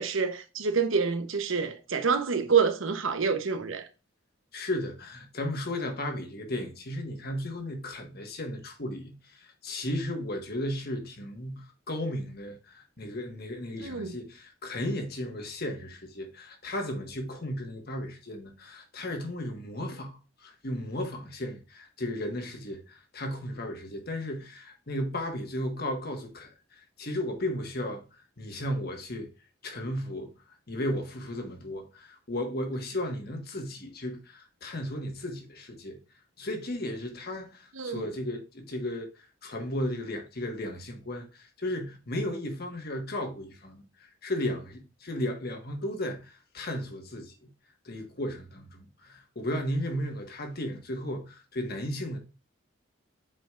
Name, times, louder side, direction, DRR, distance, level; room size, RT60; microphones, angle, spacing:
voice 1, 0.0-3.8 13.8-14.2 37.7-38.1, right 5 dB, 80° right, 0.9 m, -27 dB
voice 2, 4.5-28.0 28.4-29.3 29.6-30.3 30.7-36.0 36.4-39.1 39.4-47.4 47.8-52.2, left 1 dB, 50° left, 1.4 m, -35 dB
7.7 x 5.0 x 2.4 m
head